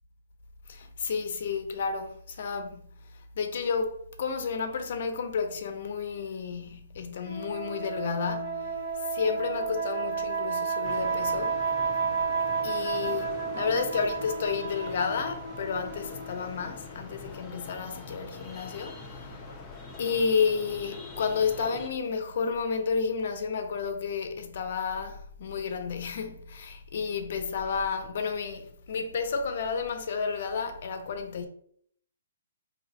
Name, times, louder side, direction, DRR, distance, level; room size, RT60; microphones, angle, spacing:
voice 1, 0.7-2.9 3.1-11.6 12.6-19.4 20.0-31.5, left 5 dB, 55° left, 0.6 m, -31 dB
sound 1, 7.2-16.9, right 5 dB, 35° right, 1.0 m, -32 dB
sound 2, 10.8-21.9, left 3 dB, 20° left, 0.7 m, -44 dB
2.8 x 2.5 x 4.2 m
hypercardioid pair, 135°, 0 cm